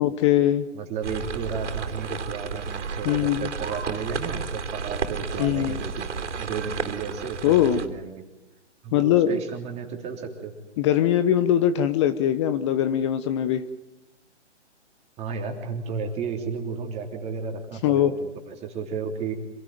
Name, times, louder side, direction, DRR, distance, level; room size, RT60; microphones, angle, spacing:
voice 1, 0.0-0.7 3.0-3.5 5.4-5.8 7.4-7.8 8.9-9.4 10.8-13.7 17.8-18.1, left 11 dB, 25° left, 12 dB, 0.8 m, -21 dB
voice 2, 0.7-8.2 8.8-10.5 15.2-19.3, right 5 dB, 20° right, 2 dB, 3.3 m, -33 dB
sound 1, 1.0-7.9, right 5 dB, 75° right, 3.7 m, -32 dB
27.0 x 18.5 x 9.1 m, 1.1 s
hypercardioid pair, 145°, 36 cm